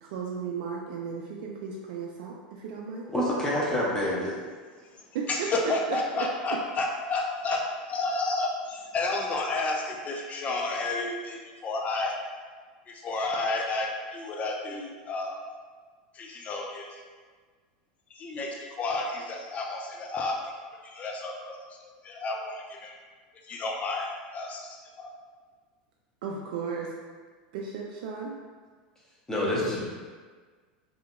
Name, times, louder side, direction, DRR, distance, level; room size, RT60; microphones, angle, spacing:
voice 1, 0.0-3.1 5.9-6.3 26.2-26.9 27.5-28.4, right 5 dB, 70° right, -2 dB, 0.3 m, -35 dB
voice 2, 3.1-4.4 29.3-29.8, left 1 dB, 15° left, -6 dB, 0.8 m, -27 dB
voice 3, 5.3-12.1 12.9-15.4 16.1-17.0 18.1-22.9 23.4-25.1, left 2 dB, 30° left, 0 dB, 0.4 m, -31 dB
2.8 x 2.7 x 2.2 m, 1.5 s
hypercardioid pair, 95°, 5 cm